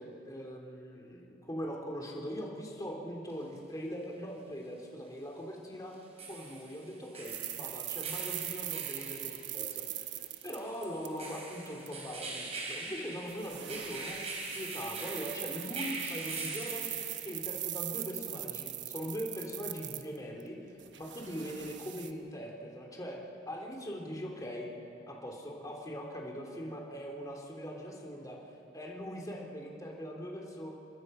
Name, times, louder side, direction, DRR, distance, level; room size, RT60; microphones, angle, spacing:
voice 1, 0.0-5.9 6.3-10.1 10.4-16.9 17.2-20.6 21.0-24.7 25.1-28.4 28.7-30.7, equal, 20° left, 0 dB, 2.6 m, -41 dB
sound 1, 3.3-3.4 5.9-17.5, right 3 dB, 35° right, 4.0 m, -43 dB
sound 2, 7.2-11.3 11.7-11.9 13.3-20.4 20.8-22.1, right 13 dB, 90° right, 1.0 m, -40 dB
27.5 x 21.0 x 5.4 m, 2.8 s
head